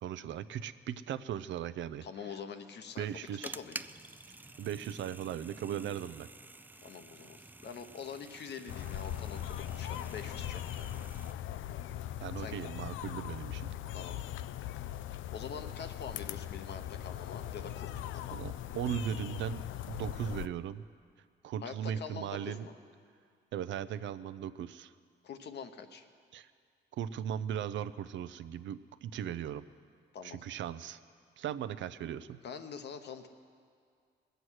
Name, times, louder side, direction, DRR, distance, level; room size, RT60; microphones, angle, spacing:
voice 1, 0.0-2.0 3.0-3.5 4.6-6.3 12.2-13.7 18.3-20.8 21.4-22.7 23.5-24.9 26.3-26.5 26.9-29.6 30.2-31.0 31.4-32.4, right 9 dB, 70° right, 14 dB, 0.5 m, -38 dB
voice 2, 2.0-3.3 3.5-3.8 6.8-11.0 12.4-12.6 13.9-14.3 15.3-18.4 21.6-22.7 25.2-26.1 30.1-30.4 32.4-33.3, left 6 dB, 60° left, 8 dB, 1.0 m, -45 dB
sound 1, 2.9-11.3, right 2 dB, 10° right, 0.4 m, -50 dB
sound 2, 8.7-20.5, left 12 dB, 75° left, 0.4 m, -40 dB
20.5 x 7.9 x 6.3 m, 2.2 s
cardioid pair, 90°, 20 cm